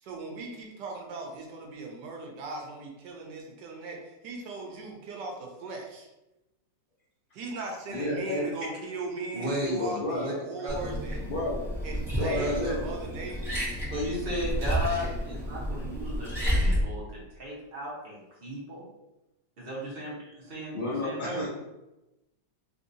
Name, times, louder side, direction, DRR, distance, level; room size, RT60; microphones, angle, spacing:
voice 1, 0.0-6.1 7.3-11.3 11.8-13.8, right 3 dB, 75° right, 0 dB, 1.3 m, -38 dB
voice 2, 7.9-8.5 9.7-10.3 11.2-11.7 12.1-12.9 20.7-21.5, left 2 dB, 60° left, -8 dB, 0.5 m, -31 dB
voice 3, 9.3-9.8 10.1-10.3 10.6-10.9 12.3-12.6 13.9-18.8 19.6-20.7 21.0-21.4, equal, 40° right, -5 dB, 1.0 m, -34 dB
Liquid, 10.7-16.8, equal, ahead, 1.0 m, -31 dB
3.4 x 2.6 x 2.6 m, 0.97 s
omnidirectional pair, 1.9 m